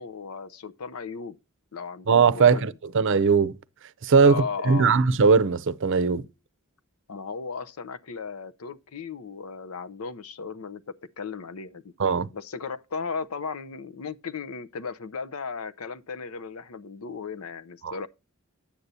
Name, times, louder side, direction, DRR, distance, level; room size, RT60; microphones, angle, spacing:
voice 1, 0.0-1.4 1.7-2.8 4.2-5.0 7.1-10.8 11.2-11.9 12.3-18.1, left 5 dB, 85° left, 0.7 m, -36 dB
voice 2, 2.1-3.6 4.0-6.2 12.0-12.3 17.8-17.9, right 5 dB, 60° right, 0.6 m, -20 dB
10.0 x 8.1 x 2.7 m
head